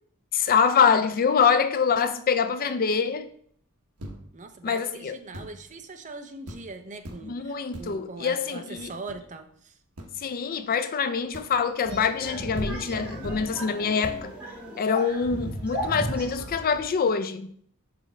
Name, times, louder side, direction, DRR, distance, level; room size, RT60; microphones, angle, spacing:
voice 1, 0.3-3.3 4.6-5.2 7.2-8.9 10.2-14.3 14.8-17.5, left 6 dB, 40° left, 0.4 m, -25 dB
sound 1, 4.0-4.5 5.3-5.7 6.1-6.2 6.5-6.8 7.0-7.4 7.7-8.1 8.7-9.4 10.0-10.2 11.3-11.7 12.3-12.4 12.5-13.6 14.0-14.3, equal, 85° right, 1.1 m, -40 dB
voice 2, 4.3-9.5, right 3 dB, 35° right, 0.6 m, -41 dB
sound 2, 11.8-16.8, right 1 dB, 5° right, 3.1 m, -35 dB
5.9 x 5.0 x 4.4 m
head